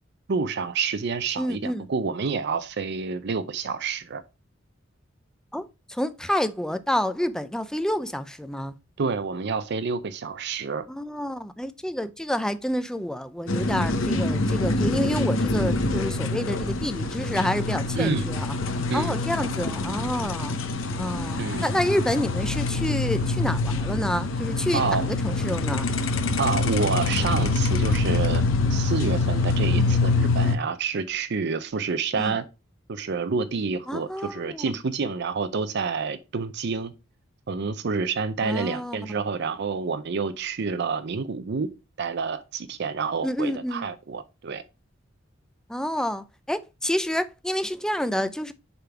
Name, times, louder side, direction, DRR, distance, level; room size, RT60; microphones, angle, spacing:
voice 1, 0.3-4.2 9.0-10.9 18.0-18.3 18.9-19.2 21.4-21.7 24.7-25.1 26.4-28.4 28.7-32.4 32.9-36.9 37.5-41.7 42.0-44.6, right 5 dB, 55° right, 0.5 m, -28 dB
voice 2, 1.4-1.9 5.5-8.7 10.9-18.5 18.9-20.5 21.0-25.9 29.8-30.0 32.1-32.3 33.9-34.7 38.4-39.1 43.2-43.9 45.7-48.5, equal, 5° left, 0.4 m, -28 dB
sound 1, 13.5-30.6, left 3 dB, 75° left, 0.8 m, -25 dB
6.9 x 3.7 x 4.4 m
head